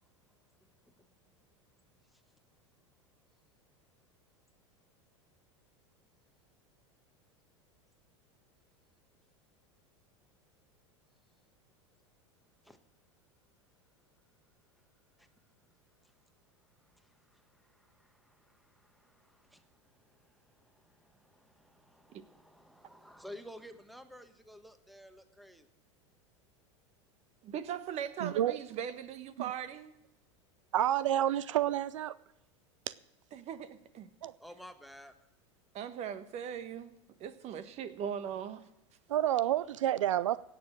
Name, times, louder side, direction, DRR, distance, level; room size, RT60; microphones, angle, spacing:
voice 1, 17.8-19.6 20.6-25.7 34.4-35.1, equal, ahead, 9 dB, 1.3 m, -53 dB
voice 2, 27.4-29.9 33.3-34.1 35.7-36.9 37.2-38.7, right 8 dB, 45° right, 12 dB, 1.2 m, -39 dB
voice 3, 28.2-28.6 30.7-32.1 34.2-34.3 39.1-40.4, right 12 dB, 80° right, 18 dB, 0.4 m, -29 dB
17.0 x 6.8 x 7.3 m, 0.90 s
hypercardioid pair, 95°, 16 cm